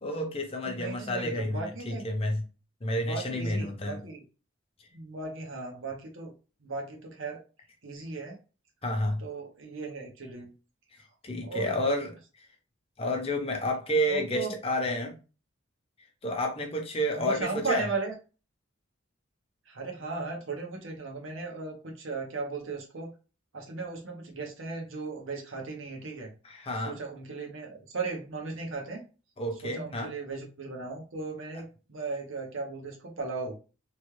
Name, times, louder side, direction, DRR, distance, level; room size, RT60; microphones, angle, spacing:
voice 1, 0.0-2.4 2.8-4.0 8.8-9.2 11.2-12.1 13.0-15.1 16.2-17.9 26.4-27.0 29.4-30.1, equal, 30° left, 3 dB, 0.6 m, -30 dB
voice 2, 0.6-2.0 3.0-4.2 4.9-6.3 6.6-7.4 7.8-8.4 9.2-10.5 11.4-11.8 14.1-14.5 17.1-18.1 19.7-23.1 23.5-26.3 26.8-29.0 29.6-33.6, right 3 dB, 70° right, 1 dB, 0.9 m, -36 dB
3.1 x 2.2 x 3.1 m, 0.33 s
head